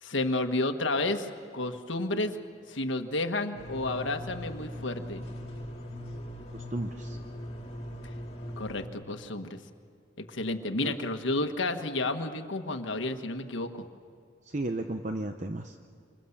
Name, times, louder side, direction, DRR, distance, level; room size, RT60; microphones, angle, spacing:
voice 1, 0.0-2.3 2.7-5.3 8.6-9.6 10.2-13.9, left 2 dB, 85° left, 6 dB, 1.5 m, -31 dB
sound 1, 3.5-8.9, equal, 30° left, 2.3 m, -40 dB
voice 2, 6.5-7.2 10.8-10.9 14.4-15.9, right 2 dB, 40° right, 6 dB, 0.8 m, -34 dB
28.0 x 26.0 x 7.3 m, 2.2 s
head